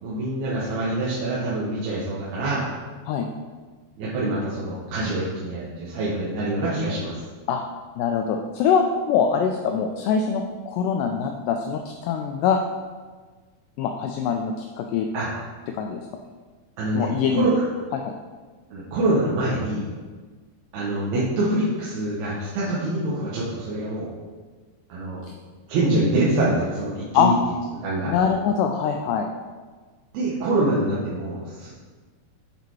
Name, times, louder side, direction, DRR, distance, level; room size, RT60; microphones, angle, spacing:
voice 1, 0.0-2.7 4.0-7.2 15.1-15.3 16.8-17.8 18.7-19.9 20.7-24.1 24.9-25.2 25.7-27.3 27.7-28.1 30.1-31.7, right 2 dB, 85° right, -7 dB, 3.2 m, -25 dB
voice 2, 8.0-12.6 13.8-15.1 15.7-16.1 16.9-17.5 17.9-18.1 27.1-27.3 28.0-29.3, left 7 dB, 90° left, 3 dB, 1.9 m, -23 dB
9.4 x 4.0 x 4.7 m, 1.4 s
omnidirectional pair, 4.3 m